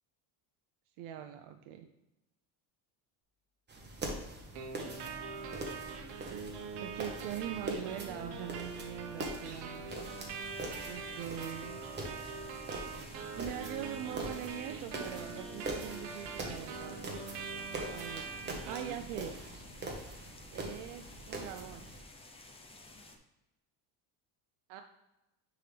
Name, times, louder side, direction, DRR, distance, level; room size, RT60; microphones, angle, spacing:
voice 1, 1.0-1.9 6.8-9.9 10.8-11.8 13.3-17.0 17.9-18.3 18.7-19.4 20.5-21.9 24.7-24.8, right 11 dB, 75° right, 6 dB, 0.7 m, -42 dB
sound 1, 3.7-22.0, right 2 dB, 20° right, 1.1 m, -43 dB
sound 2, 4.5-19.5, right 4 dB, 55° right, 1.1 m, -43 dB
sound 3, 9.9-23.2, left 2 dB, 10° left, 0.5 m, -55 dB
9.4 x 3.9 x 3.3 m, 0.95 s
cardioid pair, 145°, 49 cm